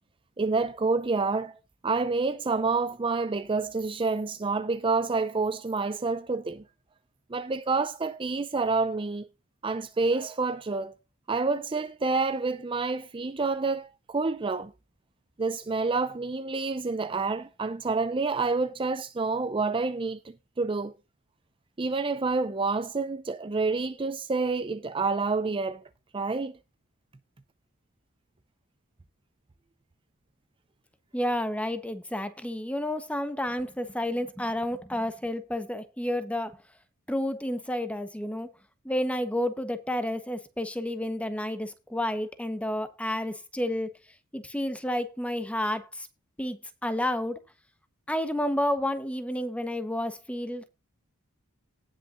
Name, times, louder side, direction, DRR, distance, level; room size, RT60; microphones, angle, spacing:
voice 1, 0.4-1.6 1.8-6.6 7.3-9.3 9.6-10.9 11.3-14.7 15.4-21.0 21.8-25.8 26.1-26.5, right 3 dB, 25° right, 0.5 m, -28 dB
voice 2, 31.1-36.5 37.1-38.5 38.8-43.9 44.3-46.1 46.4-47.4 48.1-50.7, left 1 dB, 5° left, 1.2 m, -30 dB
18.0 x 6.4 x 2.6 m
head